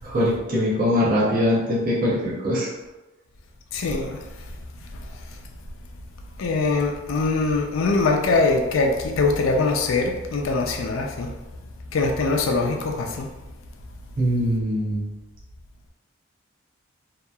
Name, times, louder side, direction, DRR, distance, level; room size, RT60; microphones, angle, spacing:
voice 1, 0.0-2.7 14.2-15.1, equal, 40° right, -7 dB, 0.5 m, -22 dB
voice 2, 3.7-4.2 6.4-11.3 11.9-13.3, left 3 dB, 80° left, 3 dB, 0.4 m, -22 dB
2.8 x 2.3 x 2.2 m, 1.1 s
head